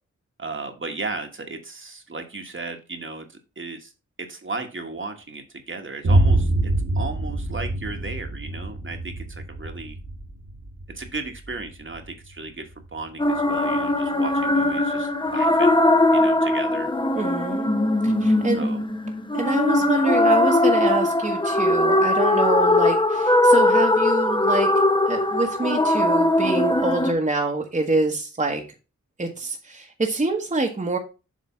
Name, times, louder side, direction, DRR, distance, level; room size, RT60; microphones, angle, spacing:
voice 1, 0.4-3.9 4.2-10.0 10.9-15.8 16.1-16.9 18.5-18.9, right 3 dB, 40° right, 5 dB, 1.4 m, -35 dB
Boom, 6.0-13.9, right 1 dB, 70° right, 1.8 m, -26 dB
sound 1, 13.2-27.1, left 1 dB, 15° left, 0.8 m, -20 dB
voice 2, 17.2-17.7 18.0-18.7 19.3-24.7 25.1-28.6 29.2-31.0, right 2 dB, 25° right, 2 dB, 1.2 m, -26 dB
7.5 x 3.3 x 5.6 m, 0.31 s
cardioid pair, 65°, 30 cm